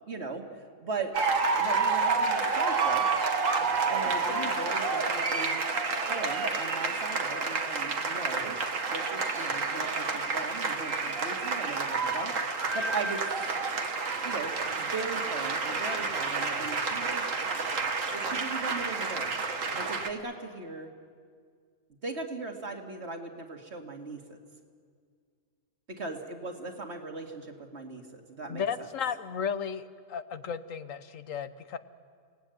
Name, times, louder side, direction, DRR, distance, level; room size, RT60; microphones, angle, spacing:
voice 1, 0.1-0.4 0.8-1.1 1.6-3.1 3.9-5.6 6.1-8.6 8.9-13.2 14.2-17.3 18.0-19.3 19.8-20.9 22.0-24.4 25.9-28.6, right 3 dB, 55° right, 3 dB, 2.5 m, -38 dB
sound 1, 1.1-20.1, right 4 dB, 75° right, 1.9 m, -29 dB
voice 2, 28.5-31.8, left 7 dB, 75° left, 12 dB, 1.4 m, -34 dB
29.5 x 18.5 x 9.3 m, 2.1 s
omnidirectional pair, 1.4 m